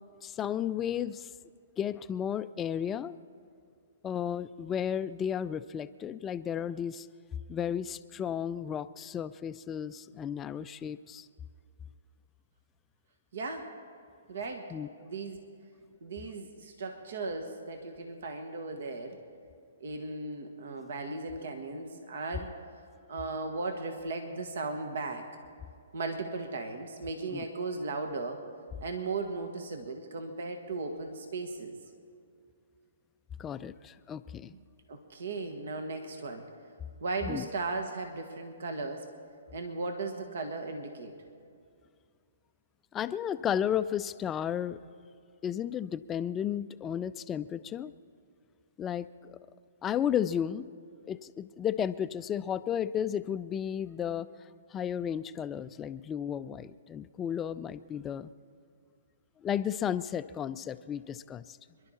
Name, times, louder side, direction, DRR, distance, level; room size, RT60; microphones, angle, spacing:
voice 1, 0.2-1.3 1.8-3.2 4.0-7.1 7.5-11.3 14.7-14.9 27.3-27.4 33.4-34.5 37.3-37.5 42.9-44.8 45.4-47.9 48.8-49.4 49.8-50.7 51.1-54.3 54.7-58.3 59.4-61.6, left 9 dB, 20° left, 13 dB, 0.3 m, -33 dB
voice 2, 13.3-13.7 14.3-14.7 15.0-15.4 16.0-19.2 19.8-22.5 23.1-25.2 25.9-28.4 28.8-31.8 34.5-34.6 34.9-36.5 37.0-39.1 39.5-41.1, right 3 dB, 70° right, 5 dB, 1.4 m, -36 dB
27.0 x 11.5 x 4.2 m, 2.3 s
hypercardioid pair, 140°, 0 cm